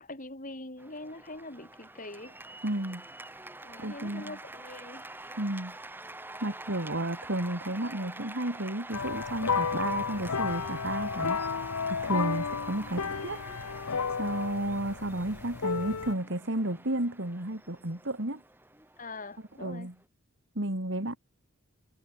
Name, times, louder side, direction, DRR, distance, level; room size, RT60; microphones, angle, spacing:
voice 1, 0.0-2.4 3.6-5.1 19.0-19.9, left 2 dB, 35° left, 4.9 m, -43 dB
Cheering / Applause, 0.8-20.0, right 2 dB, 10° right, 5.1 m, -46 dB
voice 2, 2.6-3.0 3.8-4.4 5.4-5.7 6.4-11.4 11.9-13.4 14.2-18.4 19.6-19.9 20.5-21.2, right 1 dB, 55° right, 2.8 m, -32 dB
sound 1, 8.9-16.1, left 5 dB, 85° left, 1.0 m, -32 dB
head